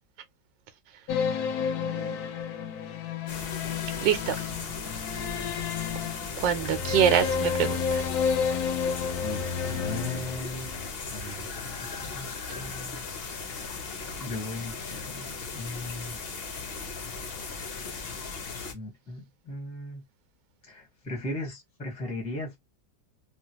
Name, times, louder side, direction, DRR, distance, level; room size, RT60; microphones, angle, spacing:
sound 1, 1.1-10.9, left 6 dB, 70° left, 1.0 m, -31 dB
voice 1, 1.5-2.3 4.0-4.4 6.4-8.1, right 9 dB, 90° right, 1.3 m, -26 dB
sound 2, 3.3-18.7, left 4 dB, 55° left, 0.6 m, -37 dB
voice 2, 9.2-10.7 11.1-11.5 11.8-13.1 13.4-16.2 18.7-20.0 20.6-22.6, left 1 dB, 5° left, 0.7 m, -38 dB
3.0 x 2.4 x 2.8 m
omnidirectional pair, 1.9 m